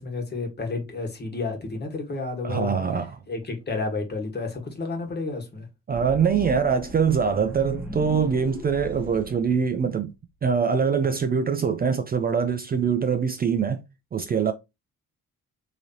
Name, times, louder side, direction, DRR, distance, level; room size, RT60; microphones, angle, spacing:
voice 1, 0.0-2.7 3.3-5.7, left 3 dB, 35° left, 1.4 m, -31 dB
voice 2, 2.4-3.2 5.9-10.1 10.4-13.8 14.1-14.5, right 6 dB, 30° right, 0.4 m, -23 dB
sound 1, 5.9-10.2, equal, 5° right, 1.1 m, -37 dB
3.8 x 3.0 x 2.8 m
cardioid pair, 90°, 30 cm